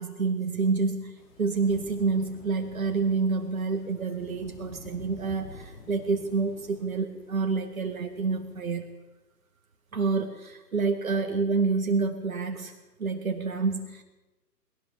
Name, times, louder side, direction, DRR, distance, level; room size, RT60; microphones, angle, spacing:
voice 1, 0.0-8.8 9.9-14.0, right 4 dB, 55° right, 5 dB, 2.1 m, -28 dB
sound 1, 1.2-8.7, left 3 dB, 30° left, 4.5 m, -49 dB
21.0 x 17.5 x 7.4 m, 1.1 s
figure-of-eight pair, 135°, 49 cm